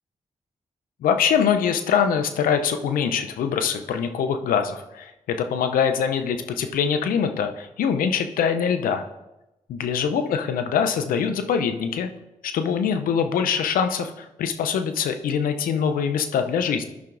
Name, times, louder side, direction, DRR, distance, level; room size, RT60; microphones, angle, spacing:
voice 1, 1.0-9.0 9.7-12.1 12.4-16.9, left 7 dB, 85° left, 8 dB, 0.6 m, -23 dB
12.5 x 5.9 x 2.6 m, 0.96 s
supercardioid pair, 40°, 14 cm